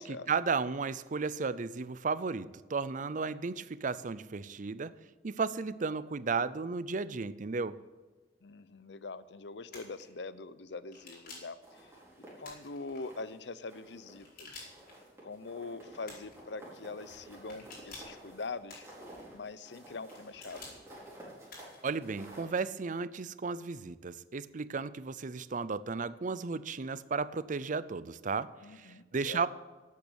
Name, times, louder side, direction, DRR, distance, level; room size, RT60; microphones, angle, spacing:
voice 1, 0.3-4.9 5.2-7.8 21.8-29.5, right 4 dB, 45° right, 17 dB, 0.6 m, -34 dB
voice 2, 8.4-11.9 12.4-14.7 15.2-18.8 19.3-20.6 28.6-29.4, left 3 dB, 80° left, 15 dB, 0.7 m, -43 dB
sound 1, 9.7-10.0 10.9-11.6 12.4-13.0 14.2-14.9 16.0-16.4 17.5-18.2 18.7-19.2 20.1-20.8 21.5-21.9, left 3 dB, 55° left, 4.9 m, -50 dB
sound 2, 11.6-13.4 13.7-14.3 14.6-22.6, right 1 dB, 15° right, 4.8 m, -52 dB
12.5 x 8.4 x 8.7 m, 1.3 s
head